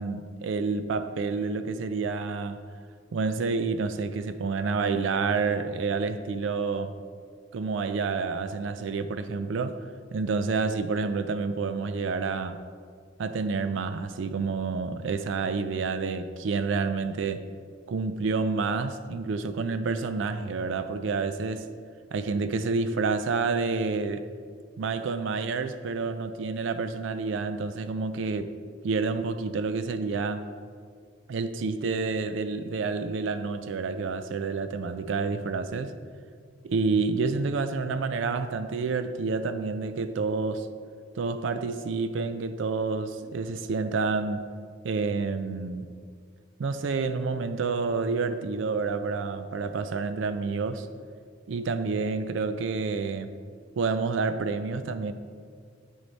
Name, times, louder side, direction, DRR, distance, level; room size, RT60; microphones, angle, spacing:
voice 1, 0.0-2.6 3.1-7.0 7.5-9.8 10.1-12.6 13.2-17.5 17.9-21.7 22.1-24.3 24.8-28.6 28.8-30.5 31.3-35.9 36.6-40.7 41.2-44.5 44.8-45.9 46.6-50.9 51.5-53.3 53.8-55.1, right 4 dB, 75° right, 11 dB, 0.4 m, -29 dB
8.8 x 6.5 x 4.0 m, 2.1 s
head